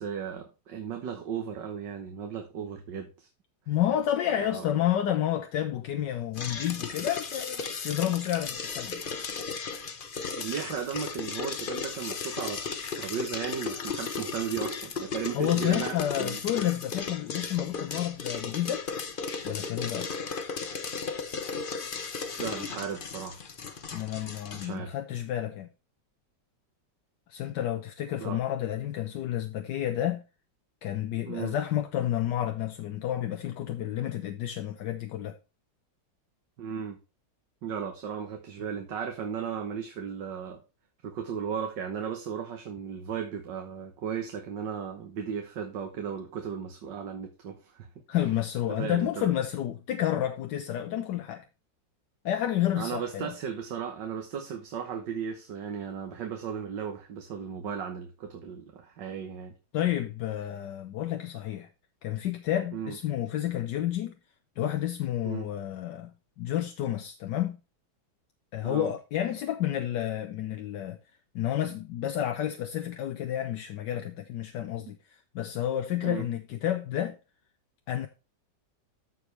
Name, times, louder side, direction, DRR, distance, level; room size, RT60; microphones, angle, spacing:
voice 1, 0.0-3.3 4.4-4.7 10.4-16.4 22.4-23.4 24.5-24.9 28.2-28.4 31.2-31.6 36.6-37.0 37.6-40.6 41.0-48.3 48.7-49.3 52.7-59.5 62.7-63.0 65.2-65.5 68.6-68.9 74.9-75.0 76.0-76.3, right 7 dB, 80° right, 1.9 m, -36 dB
voice 2, 3.7-9.0 15.3-18.9 19.4-20.1 23.9-25.7 27.3-30.2 30.8-35.4 48.1-51.4 52.2-53.3 59.7-61.7 62.0-64.1 64.6-66.1 66.4-67.6 68.5-71.0 71.3-77.2 77.9-78.1, left 11 dB, 75° left, 1.4 m, -30 dB
sound 1, 6.3-24.7, left 5 dB, 40° left, 0.8 m, -35 dB
14.0 x 4.7 x 3.3 m
omnidirectional pair, 1.9 m